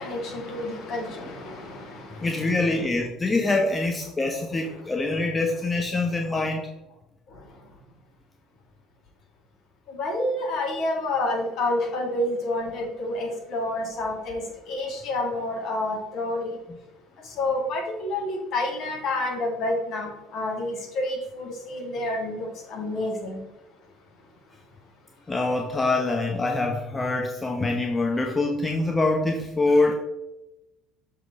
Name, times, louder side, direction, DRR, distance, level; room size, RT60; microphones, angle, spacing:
voice 1, 0.0-2.5 4.7-5.2 7.3-7.8 9.9-16.6 17.2-23.4, left 1 dB, 55° left, 2.1 m, -29 dB
voice 2, 2.2-6.6 25.3-29.9, left 2 dB, 20° left, 1.0 m, -24 dB
7.0 x 4.1 x 4.8 m
figure-of-eight pair, 60°, 0 cm